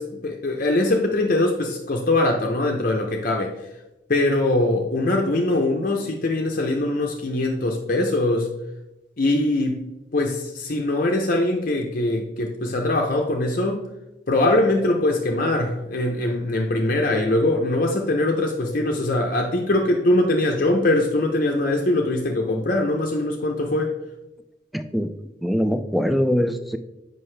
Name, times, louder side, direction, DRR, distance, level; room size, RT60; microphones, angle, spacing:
voice 1, 0.0-3.5 4.1-8.5 9.2-9.8 10.1-13.8 14.3-23.9, left 2 dB, 45° left, 1 dB, 0.6 m, -22 dB
voice 2, 24.7-25.1 25.4-26.8, equal, ahead, 9 dB, 0.3 m, -22 dB
7.4 x 5.3 x 3.2 m, 1.0 s
head